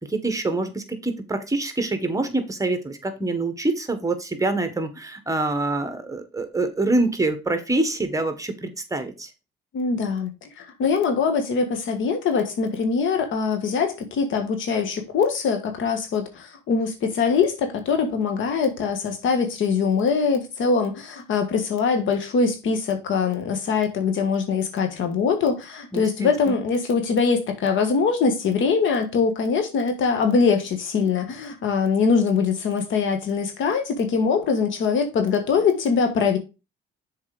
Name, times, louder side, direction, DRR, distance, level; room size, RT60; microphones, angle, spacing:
voice 1, 0.0-9.3 25.9-26.5, right 2 dB, 15° right, 1.7 m, -26 dB
voice 2, 9.7-36.4, left 5 dB, 75° left, 1.8 m, -23 dB
7.1 x 4.5 x 5.0 m
cardioid pair, 90°, 20 cm